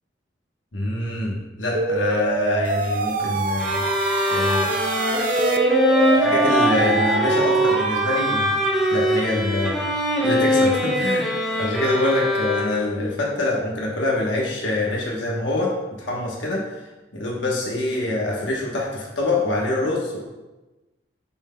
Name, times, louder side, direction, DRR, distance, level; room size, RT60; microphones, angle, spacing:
voice 1, 0.7-3.8 4.3-4.6 6.1-8.6 8.9-9.8 10.2-11.3 11.6-16.6 17.1-20.2, left 2 dB, 85° left, -3 dB, 1.1 m, -25 dB
sound 1, 1.7-9.2, right 3 dB, 45° right, 0.4 m, -25 dB
sound 2, 3.6-13.0, equal, ahead, 0.8 m, -22 dB
7.3 x 6.1 x 2.2 m, 1.1 s
head